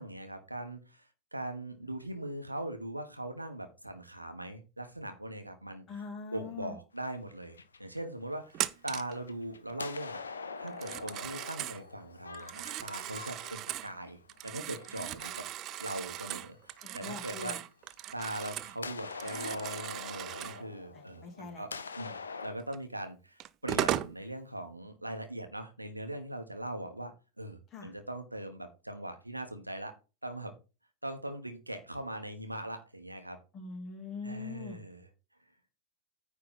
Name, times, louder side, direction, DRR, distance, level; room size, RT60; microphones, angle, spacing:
voice 1, 0.0-5.9 6.3-15.5 15.8-17.6 18.1-22.2 22.4-29.9 30.2-30.5 31.0-33.4 34.2-35.1, right 1 dB, 85° right, 7 dB, 1.3 m, -41 dB
voice 2, 5.9-6.8 16.8-17.6 20.9-21.7 27.7-27.9 33.5-34.8, left 5 dB, 20° left, 1 dB, 2.4 m, -43 dB
sound 1, 7.0-8.7 9.1-16.4 17.9-18.0 18.8-22.5, left 4 dB, 75° left, 0.7 m, -44 dB
Telephone, 8.5-9.2 10.7-11.8 12.3-13.9 14.3-18.8 19.1-20.6 22.7-22.8 23.4-24.2, right 13 dB, 35° right, 0.5 m, -37 dB
9.5 x 3.7 x 5.7 m, 0.31 s
figure-of-eight pair, 90°, 0 cm